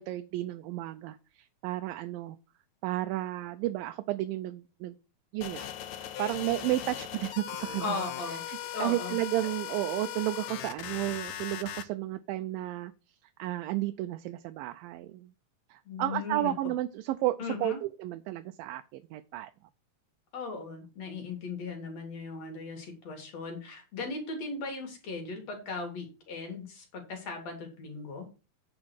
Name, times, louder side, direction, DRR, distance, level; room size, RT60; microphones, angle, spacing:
voice 1, 0.0-2.4 2.8-5.0 5.3-5.7 6.2-8.0 8.3-12.9 13.2-15.3 15.7-19.5, right 16 dB, 80° right, 9 dB, 2.3 m, -33 dB
sound 1, 5.4-11.8, left 10 dB, 70° left, 1.8 m, -39 dB
voice 2, 7.8-8.4 8.7-9.2 15.9-16.5 17.4-17.8 20.3-28.3, left 3 dB, 50° left, 3 dB, 3.4 m, -37 dB
9.6 x 5.0 x 6.2 m, 0.32 s
omnidirectional pair, 4.1 m